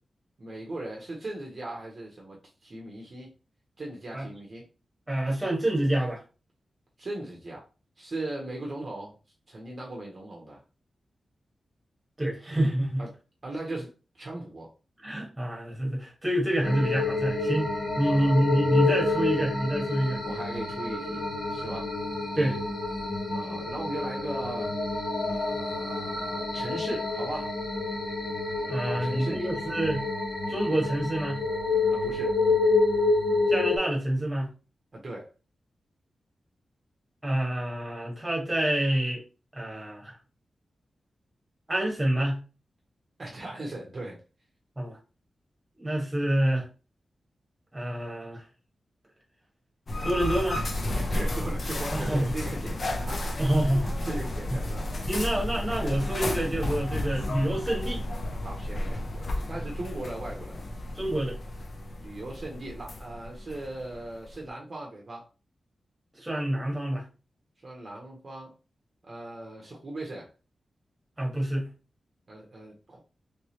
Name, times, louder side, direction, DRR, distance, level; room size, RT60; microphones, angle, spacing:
voice 1, 0.4-2.4 2.6-3.3 3.8-4.6 7.0-7.6 8.0-9.1 9.5-10.6 13.0-13.1 13.4-13.9 14.2-14.7 18.0-18.3 20.3-21.2 21.5-21.9 23.3-24.7 25.2-27.5 28.8-29.5 31.9-32.4 34.9-35.3 43.2-44.2 50.9-53.4 53.6-54.9 55.6-55.7 58.4-60.6 62.0-65.2 67.6-68.5 69.0-70.3 72.3-73.0, right 2 dB, 35° right, 0.7 m, -38 dB
voice 2, 5.1-6.2 12.2-13.0 15.0-17.7 18.0-20.2 22.4-22.6 28.6-30.0 30.5-31.4 33.5-34.5 37.2-39.2 39.5-40.2 41.7-42.4 44.8-45.0 45.8-46.7 47.7-48.4 50.0-50.6 51.9-52.3 53.4-53.9 55.1-58.0 60.9-61.4 66.2-67.0 71.2-71.7, right 1 dB, 10° right, 1.1 m, -27 dB
sound 1, 16.6-33.8, left 3 dB, 70° left, 1.3 m, -28 dB
sound 2, 49.9-64.5, left 1 dB, 45° left, 0.5 m, -32 dB
3.2 x 3.1 x 2.8 m
wide cardioid pair, 170°, 0 cm